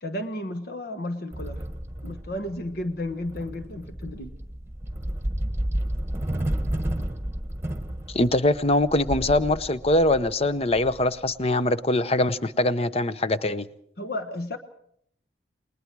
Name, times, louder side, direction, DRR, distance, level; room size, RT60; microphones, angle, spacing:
voice 1, 0.0-1.6 2.0-4.3 14.0-14.6, left 1 dB, 60° left, 1.2 m, -33 dB
sound 1, 1.3-11.5, right 1 dB, 15° right, 1.6 m, -32 dB
voice 2, 8.1-13.7, left 1 dB, 35° left, 0.8 m, -23 dB
29.5 x 20.5 x 4.7 m
head